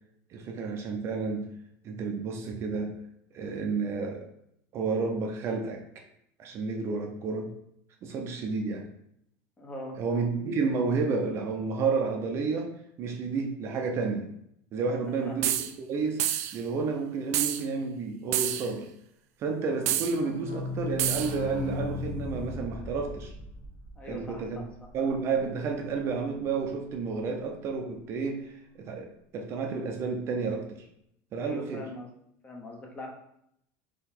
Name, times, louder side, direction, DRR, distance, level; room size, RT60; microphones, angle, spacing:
voice 1, 0.3-1.5 1.8-2.9 3.3-4.3 4.7-6.0 6.4-7.5 8.0-8.9 10.0-14.3 14.7-16.2 16.5-18.9 19.4-23.3 24.1-24.6 24.9-30.9 31.3-31.9, right 4 dB, 35° right, 3 dB, 0.5 m, -31 dB
voice 2, 9.6-10.0 15.0-15.3 24.0-24.6 31.4-32.1 32.4-33.1, left 1 dB, 15° left, 1 dB, 0.7 m, -42 dB
sound 1, 15.4-15.7 16.2-16.6 17.3-17.6 18.3-18.7 19.9-20.1 21.0-21.3, right 12 dB, 90° right, 0.4 m, -28 dB
sound 2, 19.8-25.4 25.7-25.8 26.0-26.1 26.3-26.4, left 3 dB, 50° left, 0.7 m, -37 dB
3.8 x 2.8 x 4.3 m, 0.75 s
supercardioid pair, 155°, 8 cm